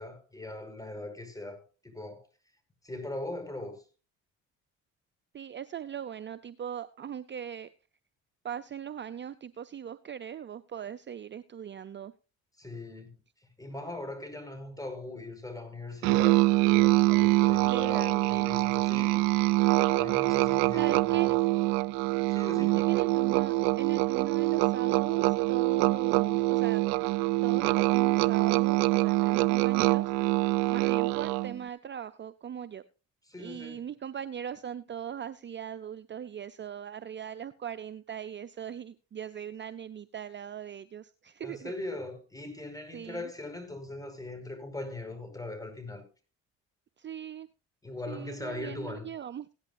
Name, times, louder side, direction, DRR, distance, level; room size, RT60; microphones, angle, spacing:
voice 1, 0.0-2.2 2.8-3.8 12.6-13.1 13.6-19.2 20.0-21.3 22.3-22.8 33.3-33.8 41.4-46.0 47.8-49.1, left 2 dB, 10° left, 5.4 m, -40 dB
voice 2, 5.3-7.7 8.4-12.1 17.6-18.5 18.9-19.2 20.7-21.4 22.6-26.8 27.4-32.8 33.4-41.7 42.9-43.3 47.0-47.5 48.1-49.5, right 9 dB, 35° right, 0.6 m, -40 dB
Musical instrument, 16.0-31.6, right 20 dB, 75° right, 0.5 m, -25 dB
17.0 x 11.0 x 2.6 m
hypercardioid pair, 60°, 34 cm